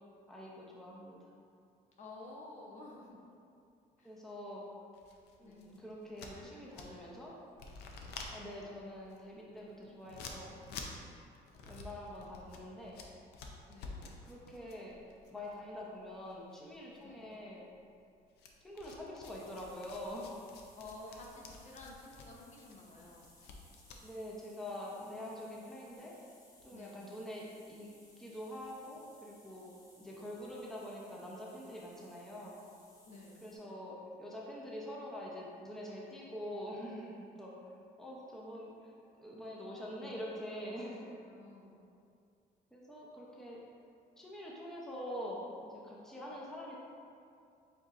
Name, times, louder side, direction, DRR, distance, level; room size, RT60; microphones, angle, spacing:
voice 1, 0.3-1.3 4.0-4.6 5.4-7.4 8.3-10.5 11.6-13.0 14.3-15.0 15.3-17.6 18.6-20.5 24.0-26.1 26.6-27.9 28.2-32.6 33.4-38.9 39.2-41.1 42.7-43.6 44.2-46.8, equal, ahead, -5 dB, 0.7 m, -45 dB
voice 2, 2.0-3.2 4.0-4.1 5.4-5.8 6.3-6.5 6.9-7.1 9.8-10.3 12.1-12.6 13.6-14.2 17.0-17.2 20.8-23.3 24.9-25.4 26.7-27.1 30.0-30.3 33.1-33.5 40.0-40.2 41.2-41.7, left 2 dB, 45° left, -2 dB, 0.8 m, -53 dB
sound 1, 4.9-7.2 7.5-16.3 16.5-17.3 18.4-24.0, left 4 dB, 75° left, 0.5 m, -50 dB
sound 2, 19.3-33.6, left 1 dB, 20° left, 1.0 m, -64 dB
7.8 x 2.7 x 2.5 m, 2.4 s
cardioid pair, 110°, 17 cm